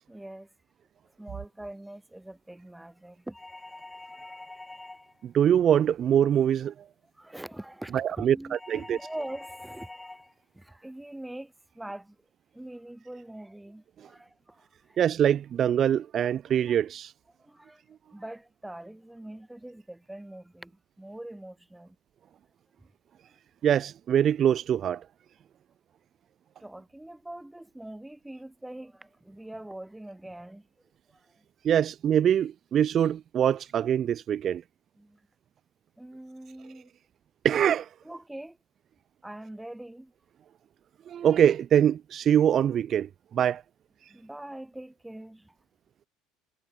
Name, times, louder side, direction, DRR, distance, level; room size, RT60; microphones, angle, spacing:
voice 1, 0.1-0.5 1.2-3.4 4.2-4.3 7.1-10.2 10.5-12.2 12.5-15.0 17.4-22.0 26.6-30.7 31.1-31.5 35.0-35.2 36.0-36.9 38.0-38.6 39.2-40.1 44.1-45.6, right 1 dB, 5° right, 1.8 m, -43 dB
sound 1, 3.3-5.3 8.5-10.3, left 2 dB, 15° left, 2.7 m, -45 dB
voice 2, 5.2-6.7 7.9-9.0 15.0-17.1 23.6-25.0 31.6-34.6 37.4-37.9 41.1-43.6, right 9 dB, 45° right, 0.5 m, -24 dB
hypercardioid pair, 65°, 0 cm